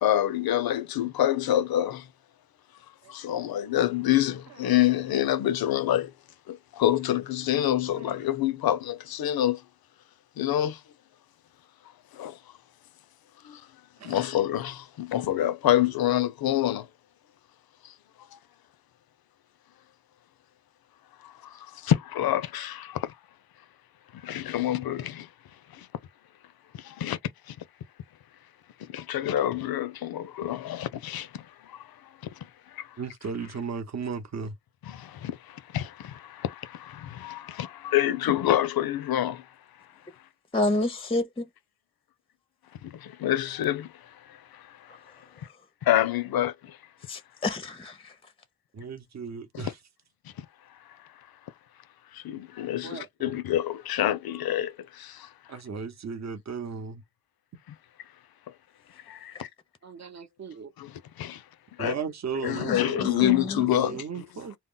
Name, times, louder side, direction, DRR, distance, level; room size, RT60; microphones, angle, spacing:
voice 1, 0.0-2.1 3.1-6.1 6.5-9.6 10.4-10.8 12.1-12.4 13.4-13.6 14.0-16.9 17.8-18.4 21.2-23.1 24.1-25.3 25.7-25.9 26.7-27.2 27.5-27.6 28.8-33.0 34.8-39.5 39.8-39.9 42.8-45.5 45.8-46.8 49.5-49.7 50.2-50.5 50.9-51.3 52.1-55.6 59.0-59.5 60.8-61.4 61.8-62.0 62.4-64.3, left 12 dB, 75° left, 0.5 m, -28 dB
voice 2, 33.0-34.5 48.7-49.7 52.8-53.1 55.5-57.0 59.8-60.7 61.8-64.5, right 5 dB, 45° right, 0.8 m, -36 dB
voice 3, 40.5-41.4 47.1-48.1 62.6-63.6, left 2 dB, 15° left, 0.5 m, -29 dB
2.1 x 2.0 x 3.7 m
cardioid pair, 50°, 37 cm